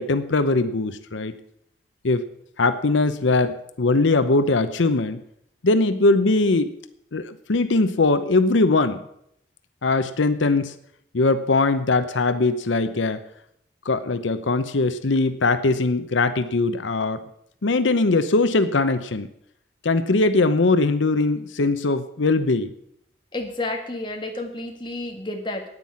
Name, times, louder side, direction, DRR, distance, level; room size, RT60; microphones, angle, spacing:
voice 1, 0.0-1.3 2.0-2.2 2.6-5.2 5.6-6.7 7.1-9.0 9.8-10.7 11.1-13.2 13.9-17.2 17.6-19.3 19.8-22.7, left 3 dB, 90° left, 11 dB, 0.8 m, -21 dB
voice 2, 23.3-25.7, left 2 dB, 25° left, 3 dB, 1.7 m, -30 dB
9.7 x 9.2 x 8.6 m, 0.73 s
head